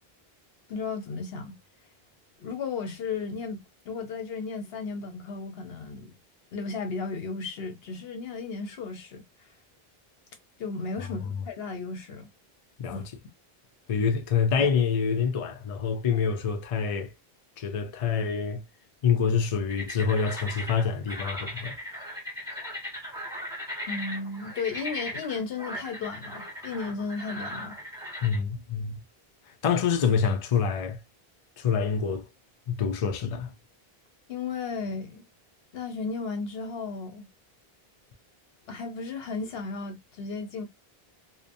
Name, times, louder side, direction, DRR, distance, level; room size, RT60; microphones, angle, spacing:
voice 1, 0.7-1.6 2.4-6.1 6.5-9.2 10.6-12.3 12.9-13.0 23.9-27.8 34.3-35.2 35.7-37.3 38.7-40.7, left 4 dB, 75° left, 0.9 m, -34 dB
voice 2, 13.9-17.1 17.6-18.6 19.0-21.8 28.2-29.0 29.6-31.0 31.6-32.3 32.7-33.5, left 6 dB, 50° left, 0.5 m, -26 dB
sound 1, 19.7-28.4, left 1 dB, 5° right, 1.0 m, -38 dB
2.8 x 2.0 x 2.6 m
omnidirectional pair, 1.0 m